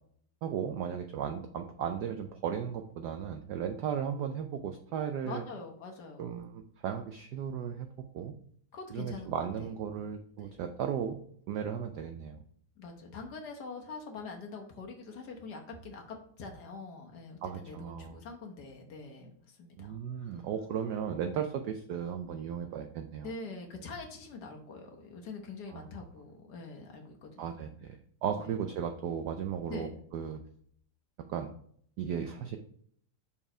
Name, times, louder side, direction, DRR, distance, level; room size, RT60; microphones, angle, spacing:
voice 1, 0.4-5.4 6.2-7.9 8.1-8.3 8.9-11.2 11.5-12.4 17.4-18.2 19.8-23.3 25.7-25.9 27.4-28.0 28.2-30.4 31.3-31.5 32.0-32.6, right 8 dB, 80° right, 6 dB, 0.9 m, -35 dB
voice 2, 5.2-6.4 8.7-9.3 9.6-9.7 10.4-10.6 12.8-20.4 23.2-27.6 28.4-28.5 29.7-29.9, left 3 dB, 55° left, 1 dB, 1.4 m, -44 dB
5.6 x 4.7 x 4.9 m, 0.63 s
omnidirectional pair, 2.3 m